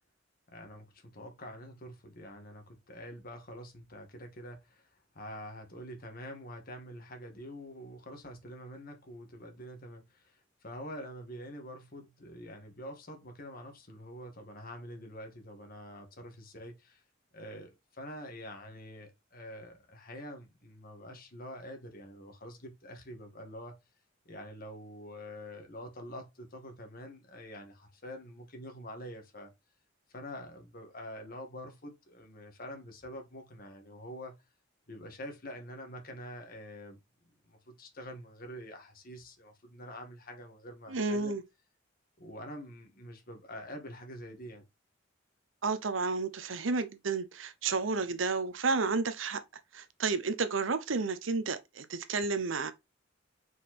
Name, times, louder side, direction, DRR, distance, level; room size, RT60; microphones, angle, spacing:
voice 1, 0.5-17.0 17.3-23.8 24.3-29.5 30.1-34.4 34.9-37.0 37.2-41.4 42.2-44.6, equal, 50° left, 1.9 m, -46 dB
voice 2, 40.9-41.4 45.6-49.4 49.7-52.7, right 4 dB, 75° right, 0.8 m, -31 dB
5.4 x 4.8 x 4.2 m
head